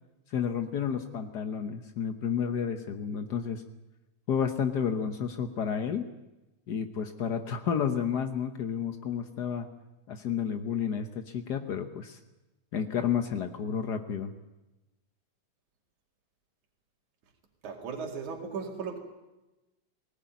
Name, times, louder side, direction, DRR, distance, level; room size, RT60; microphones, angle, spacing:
voice 1, 0.3-3.6 4.3-6.1 6.7-9.7 10.1-12.2 12.7-14.3, left 7 dB, 85° left, 8 dB, 0.8 m, -31 dB
voice 2, 17.6-19.0, right 5 dB, 80° right, 2 dB, 3.9 m, -36 dB
19.5 x 18.0 x 9.3 m, 1.0 s
omnidirectional pair, 3.4 m